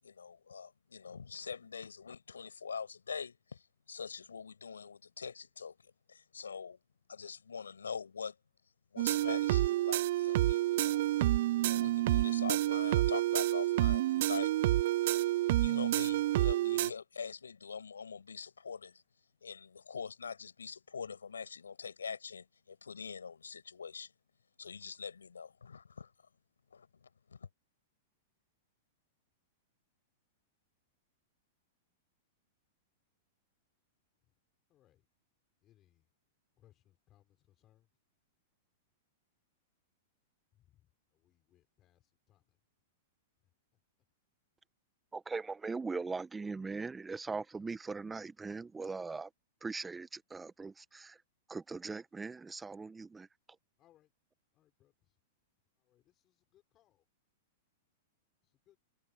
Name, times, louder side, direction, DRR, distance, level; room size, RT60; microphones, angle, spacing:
voice 1, 0.0-3.6 3.9-6.8 7.1-8.4 8.9-11.0 11.7-14.8 15.1-15.2 15.6-19.0 19.4-24.1 24.6-26.1 26.7-27.5, left 6 dB, 85° left, 5.9 m, -44 dB
sound 1, 9.0-16.9, right 15 dB, 60° right, 0.4 m, -29 dB
voice 2, 41.5-42.0 42.3-42.4 53.8-54.1 54.6-54.9 55.9-56.0 56.7-56.9 58.7-58.8, left 13 dB, 35° left, 5.6 m, -66 dB
voice 3, 45.1-49.3 49.6-51.2 51.5-53.3, right 4 dB, 10° right, 1.6 m, -40 dB
hypercardioid pair, 105°, 0 cm